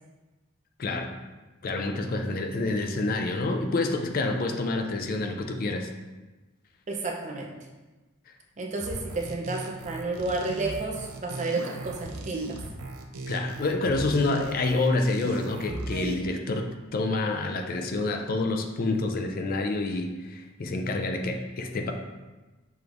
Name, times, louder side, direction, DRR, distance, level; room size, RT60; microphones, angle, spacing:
voice 1, 0.8-1.1 1.6-5.9 13.3-21.9, left 2 dB, 45° left, 5 dB, 0.4 m, -28 dB
voice 2, 6.9-7.5 8.6-12.6, right 3 dB, 35° right, 0 dB, 0.5 m, -31 dB
sound 1, 8.8-16.1, right 2 dB, 90° right, 0.6 m, -37 dB
6.8 x 3.1 x 2.5 m, 1.2 s
head